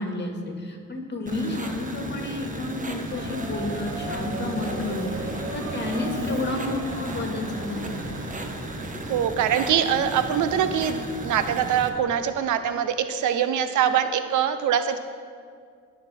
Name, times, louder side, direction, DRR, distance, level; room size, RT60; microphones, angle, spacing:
voice 1, 0.0-8.1, left 2 dB, 35° left, 2 dB, 2.1 m, -31 dB
sound 1, 1.3-11.9, right 2 dB, 25° right, 1.3 m, -35 dB
Subway metro underground, 3.1-9.3, right 2 dB, 40° right, 1.5 m, -36 dB
voice 2, 9.1-15.0, right 9 dB, 80° right, 10 dB, 0.8 m, -23 dB
19.0 x 6.7 x 4.3 m, 2.1 s
cardioid pair, 90°, 30 cm